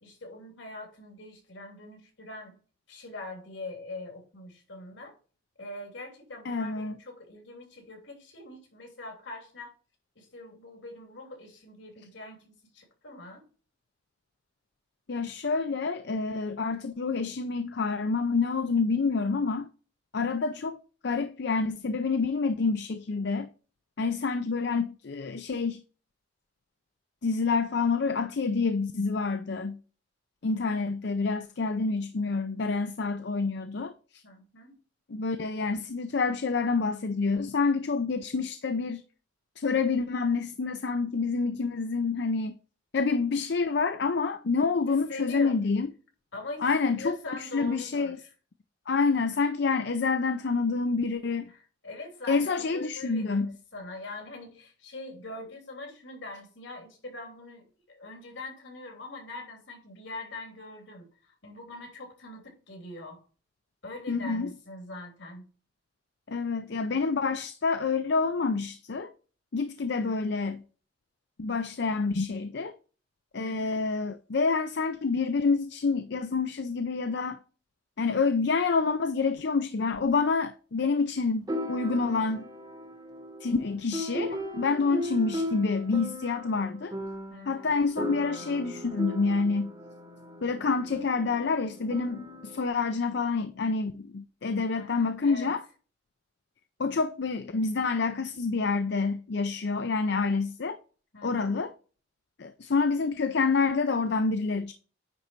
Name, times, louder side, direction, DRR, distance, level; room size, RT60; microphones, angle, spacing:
voice 1, 0.0-2.5 2.9-5.1 5.6-9.7 10.1-13.4 34.2-34.8 44.9-45.5 46.3-48.2 51.5-63.2 63.8-65.4 73.3-73.8 87.3-87.7 94.7-95.5 101.1-101.6, left 2 dB, 80° left, 3.0 m, -43 dB
voice 2, 6.4-7.0 15.1-19.7 20.1-23.5 24.0-25.8 27.2-29.8 30.4-34.2 35.1-39.0 39.6-42.5 42.9-45.9 46.6-48.2 48.9-51.5 52.3-53.5 64.1-64.5 66.3-69.1 69.5-70.6 71.4-72.7 73.3-77.4 78.0-82.5 83.4-86.9 87.5-89.7 90.4-95.6 96.8-100.8 101.2-101.7 102.4-104.7, left 4 dB, 65° left, 0.5 m, -28 dB
sound 1, 79.9-80.0 81.5-92.7, equal, 20° right, 0.9 m, -37 dB
9.7 x 3.9 x 4.5 m
head